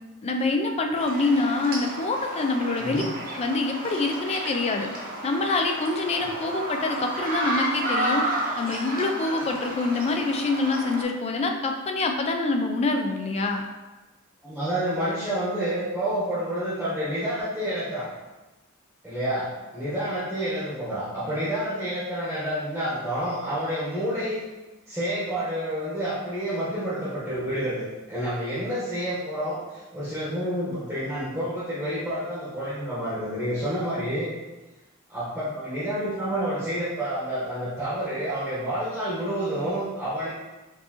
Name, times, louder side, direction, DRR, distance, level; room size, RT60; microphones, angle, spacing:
voice 1, 0.2-3.0 3.3-4.9 5.2-8.2 8.6-13.6, left 3 dB, 30° left, 4 dB, 0.4 m, -26 dB
sound 1, 0.9-11.0, right 1 dB, 45° right, 0.8 m, -31 dB
voice 2, 2.8-3.1 14.4-18.1 19.0-24.4 24.9-34.3 35.1-40.3, right 1 dB, 5° right, -10 dB, 0.9 m, -29 dB
4.4 x 2.7 x 2.8 m, 1.1 s
head